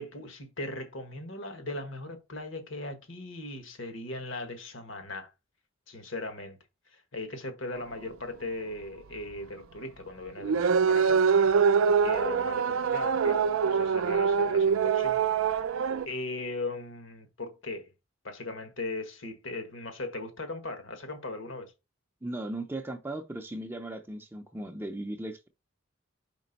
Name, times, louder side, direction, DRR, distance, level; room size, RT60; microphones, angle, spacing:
voice 1, 0.0-5.3 5.9-6.6 6.9-11.2 12.0-15.2 16.0-17.9 18.2-21.7, left 2 dB, 70° left, 1.4 m, -38 dB
sound 1, 10.4-16.1, right 6 dB, 85° right, 0.4 m, -24 dB
voice 2, 22.2-25.5, right 1 dB, 10° right, 0.4 m, -37 dB
5.2 x 4.8 x 4.0 m
head